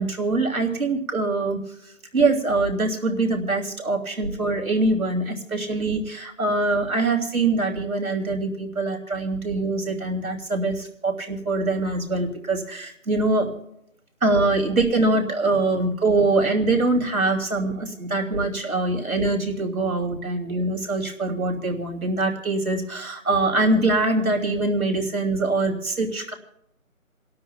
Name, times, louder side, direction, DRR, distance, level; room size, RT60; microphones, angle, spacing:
voice 1, 0.0-1.6 2.1-13.5 14.2-26.3, right 2 dB, 80° right, 2 dB, 2.8 m, -23 dB
29.0 x 12.5 x 2.2 m, 0.77 s
figure-of-eight pair, 180°, 42 cm